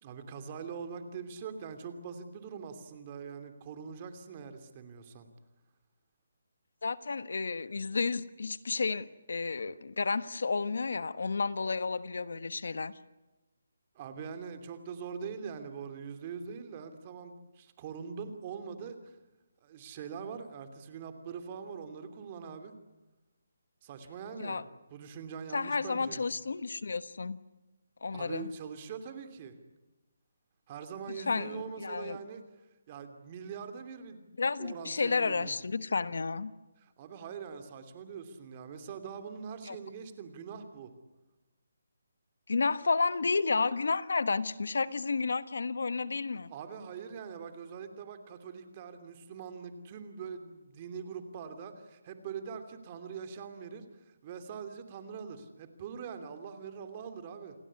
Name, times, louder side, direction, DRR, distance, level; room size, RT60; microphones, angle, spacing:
voice 1, 0.0-5.3 13.9-19.2 19.6-22.7 23.8-24.6 24.9-26.2 28.1-29.5 30.7-32.4 32.9-34.2 34.6-35.6 36.8-40.9 46.5-57.5, right 6 dB, 25° right, 8 dB, 2.8 m, -43 dB
voice 2, 6.8-12.9 24.4-24.6 25.5-27.4 28.0-28.5 31.1-32.2 34.4-36.5 39.7-39.8 42.5-46.5, left 4 dB, 75° left, 15 dB, 1.3 m, -31 dB
28.5 x 18.0 x 9.7 m, 1.1 s
hypercardioid pair, 165°, 0 cm